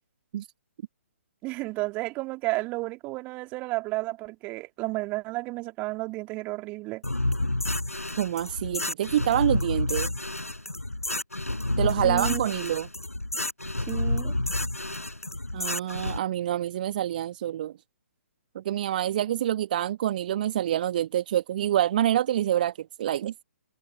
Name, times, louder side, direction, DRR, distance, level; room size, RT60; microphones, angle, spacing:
voice 1, 1.4-7.0 11.8-12.4 13.9-14.3, right 22 dB, 20° right, 3.2 m, -32 dB
sound 1, 7.0-16.2, left 1 dB, 80° left, 5.7 m, -29 dB
voice 2, 8.2-10.1 11.8-12.9 15.5-17.7 18.5-23.3, right 11 dB, 40° right, 1.5 m, -26 dB
figure-of-eight pair, 130°, 8 cm